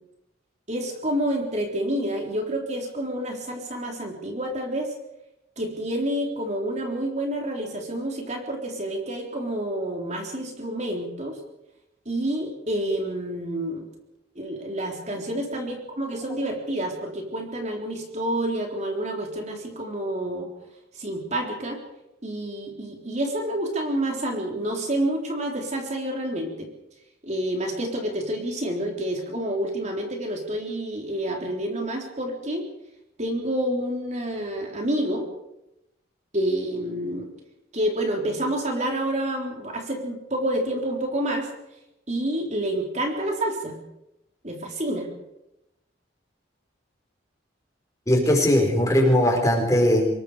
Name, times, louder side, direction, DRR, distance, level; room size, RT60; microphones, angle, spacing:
voice 1, 0.7-4.9 5.6-11.4 12.1-13.9 14.4-20.5 20.9-21.8 22.2-26.7 27.2-32.6 33.2-35.3 36.3-37.3 37.7-41.5 42.1-43.8 44.4-45.1, right 1 dB, 35° right, 1 dB, 3.9 m, -28 dB
voice 2, 48.1-50.1, left 1 dB, 15° left, 1 dB, 5.4 m, -20 dB
26.0 x 21.5 x 5.0 m, 0.87 s
head